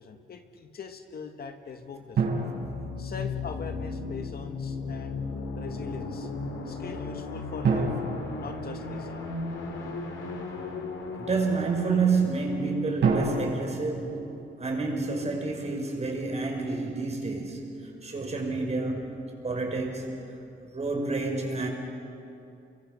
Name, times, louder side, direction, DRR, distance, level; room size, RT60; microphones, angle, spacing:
voice 1, 0.0-2.4 3.0-5.2 5.5-6.3 6.6-7.9 8.4-9.3, left 5 dB, 50° left, 6 dB, 1.8 m, -41 dB
sound 1, 2.2-3.8 7.6-9.5 13.0-15.3, right 4 dB, 60° right, 7.3 m, -30 dB
sound 2, 2.6-14.1, left 3 dB, 80° left, 4.3 m, -36 dB
voice 2, 11.2-20.1 20.7-21.7, right 4 dB, 35° right, 2 dB, 5.9 m, -29 dB
28.0 x 24.0 x 7.0 m, 2.7 s
cardioid pair, 90°, 20 cm